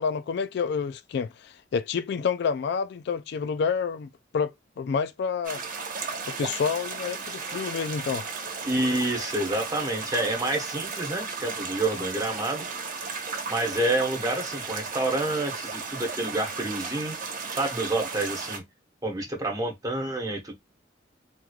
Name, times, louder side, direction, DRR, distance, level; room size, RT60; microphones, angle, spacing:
voice 1, 0.0-5.6 6.3-8.2, left 6 dB, 60° left, 0.3 m, -29 dB
sound 1, 5.4-18.6, right 4 dB, 45° right, 1.0 m, -35 dB
voice 2, 8.7-12.7 13.5-17.1 17.6-18.6 19.0-20.5, right 2 dB, 20° right, 1.1 m, -28 dB
3.6 x 3.1 x 2.3 m
head